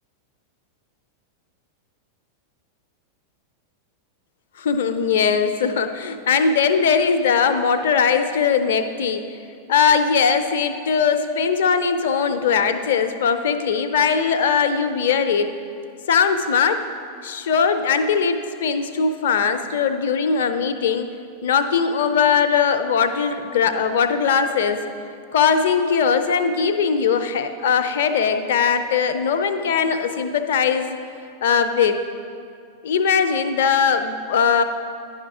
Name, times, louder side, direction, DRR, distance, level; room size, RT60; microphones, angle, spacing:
voice 1, 4.6-9.2 9.7-15.5 16.1-16.8 17.2-21.1 21.4-24.8 25.3-31.0 31.4-32.0 32.8-34.6, left 6 dB, 60° left, 9 dB, 0.5 m, -20 dB
10.5 x 4.9 x 4.7 m, 2.4 s
figure-of-eight pair, 90°, 0 cm